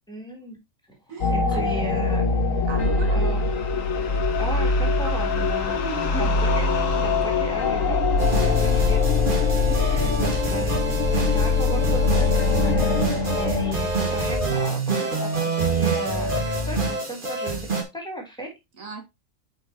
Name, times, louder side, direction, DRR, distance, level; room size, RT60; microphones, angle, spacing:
voice 1, 0.1-0.6 1.3-2.2 3.1-3.4 4.4-5.8 6.2-6.6 7.0-8.0 8.4-9.1 9.7-18.5, right 1 dB, 5° left, 3.7 m, -35 dB
voice 2, 1.1-1.7 2.7-3.2 5.0-5.1 5.7-6.3 6.9-7.0 8.4-9.0 9.7-10.3 18.8-19.0, right 3 dB, 85° right, 2.4 m, -37 dB
sound 1, 1.2-13.7, left 4 dB, 80° left, 1.6 m, -23 dB
Bowed string instrument, 5.9-10.8, equal, 35° left, 2.2 m, -38 dB
sound 2, 8.2-17.8, right 2 dB, 40° right, 2.2 m, -25 dB
8.7 x 5.4 x 3.0 m
omnidirectional pair, 1.4 m